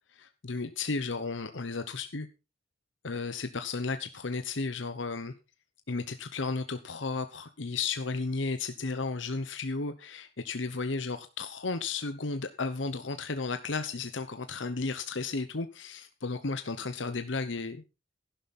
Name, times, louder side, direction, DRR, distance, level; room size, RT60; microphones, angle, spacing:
voice 1, 0.1-2.3 3.0-5.3 5.9-17.8, left 4 dB, 70° left, 9 dB, 1.0 m, -34 dB
11.5 x 11.5 x 4.3 m, 0.29 s
head